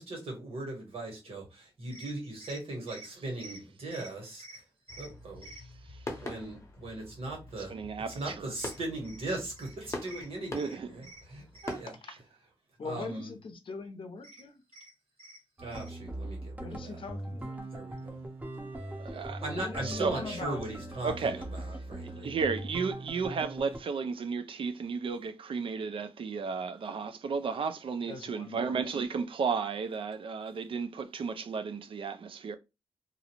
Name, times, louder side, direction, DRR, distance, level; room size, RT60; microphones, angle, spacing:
voice 1, 0.0-4.6 4.9-5.6 6.2-7.7 8.1-11.9 12.8-13.3 14.7-14.9 15.2-17.0 17.7-18.2 19.4-22.3, right 2 dB, 85° right, 1.3 m, -39 dB
sound 1, 4.9-11.8, left 2 dB, 30° left, 0.7 m, -44 dB
voice 2, 7.7-8.5 10.5-11.1 11.6-11.8 19.0-19.4 19.8-20.2 21.0-21.4 22.0-32.6, right 5 dB, 65° right, 0.4 m, -33 dB
voice 3, 12.8-14.6 16.6-17.6 19.1-19.2 19.5-20.7 28.1-29.0, left 4 dB, 65° left, 0.6 m, -42 dB
sound 2, 15.6-23.8, right 1 dB, 15° right, 0.6 m, -40 dB
2.5 x 2.0 x 2.9 m
wide cardioid pair, 85°, 10 cm